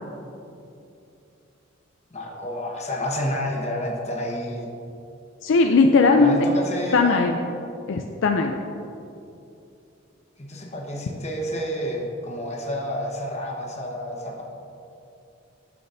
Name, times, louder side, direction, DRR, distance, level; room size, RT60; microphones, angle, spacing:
voice 1, 2.1-4.7 6.2-7.2 10.4-14.4, left 1 dB, 35° left, -1 dB, 1.2 m, -29 dB
voice 2, 5.4-6.4 6.9-7.4 7.9-8.5, left 4 dB, 70° left, 3 dB, 0.4 m, -18 dB
12.0 x 5.9 x 2.6 m, 2.7 s
head